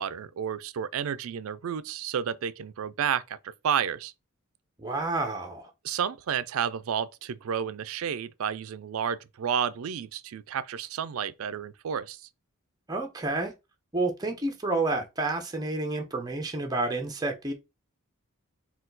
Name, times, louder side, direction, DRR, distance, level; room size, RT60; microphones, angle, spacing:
voice 1, 0.0-4.1 5.8-12.2, right 8 dB, 70° right, 0.4 m, -31 dB
voice 2, 4.8-5.7 12.9-13.5 13.9-17.5, right 2 dB, 20° right, 0.7 m, -29 dB
4.2 x 2.3 x 3.9 m
head